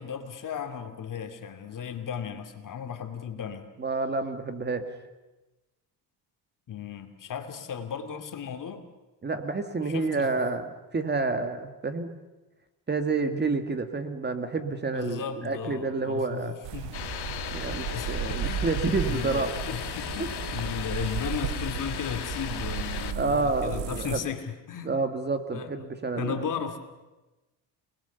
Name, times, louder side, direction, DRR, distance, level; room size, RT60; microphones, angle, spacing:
voice 1, 0.0-3.7 6.7-8.8 9.8-10.3 14.9-17.3 17.7-24.9 25.5-25.7 26.2-26.8, left 8 dB, 45° left, 7 dB, 2.6 m, -36 dB
voice 2, 3.8-4.9 9.2-12.2 12.9-16.5 17.5-19.5 23.2-24.2 24.8-26.5, right 3 dB, 25° right, 8 dB, 1.9 m, -29 dB
sound 1, 16.6-24.2, right 11 dB, 80° right, 1.1 m, -35 dB
sound 2, 16.9-23.1, left 10 dB, 65° left, 1.9 m, -36 dB
29.5 x 20.5 x 6.9 m, 1.1 s
cardioid pair, 120°, 43 cm